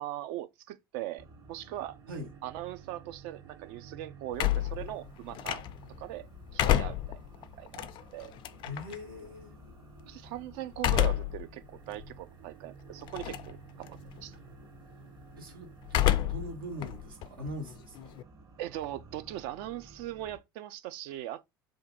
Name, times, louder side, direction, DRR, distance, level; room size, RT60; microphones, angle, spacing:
voice 1, 0.0-2.0 2.4-5.6 6.0-6.3 6.5-7.2 7.6-8.4 10.1-14.4 18.6-21.4, right 14 dB, 55° right, 0.4 m, -40 dB
sound 1, 1.2-20.4, right 5 dB, 35° right, 0.8 m, -53 dB
sound 2, 4.3-6.0 6.4-9.0 10.7-11.4 11.9-12.0 13.1-13.6 13.9-14.3 15.9-16.5 16.8-18.2, left 13 dB, 45° left, 0.3 m, -29 dB
voice 2, 8.6-9.5 15.4-18.1, left 1 dB, 80° right, 1.0 m, -41 dB
2.6 x 2.5 x 3.6 m
hypercardioid pair, 70°, 12 cm